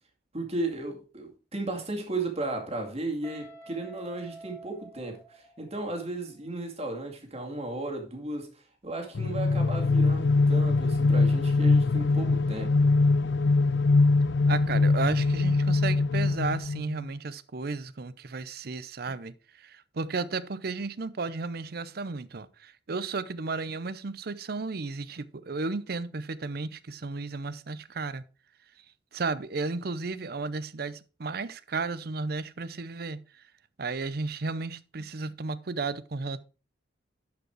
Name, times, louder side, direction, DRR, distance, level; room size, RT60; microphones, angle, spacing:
voice 1, 0.3-8.5 8.8-12.8, right 2 dB, 35° right, 2.2 m, -35 dB
Guitar, 3.2-6.1, right 2 dB, 15° left, 1.6 m, -48 dB
sound 1, 9.1-17.1, left 3 dB, 75° left, 0.5 m, -23 dB
voice 2, 14.5-28.2 29.1-33.2 33.8-36.4, right 3 dB, 60° right, 0.6 m, -33 dB
11.5 x 5.2 x 4.6 m
head